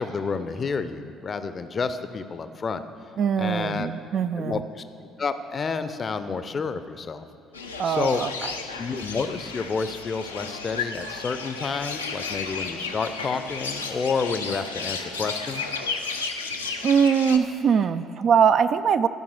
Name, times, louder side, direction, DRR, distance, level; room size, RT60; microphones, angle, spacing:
voice 1, 0.0-2.8 3.4-3.9 4.4-4.8 5.2-7.3 7.8-8.2 8.8-15.6, left 5 dB, 35° left, 11 dB, 0.6 m, -29 dB
voice 2, 3.2-4.6 7.8-8.5 16.8-19.1, right 7 dB, 50° right, 12 dB, 0.3 m, -22 dB
sound 1, 7.5-17.4, left 4 dB, 85° left, 0.5 m, -33 dB
13.0 x 5.3 x 6.5 m, 2.7 s
figure-of-eight pair, 50°, 0 cm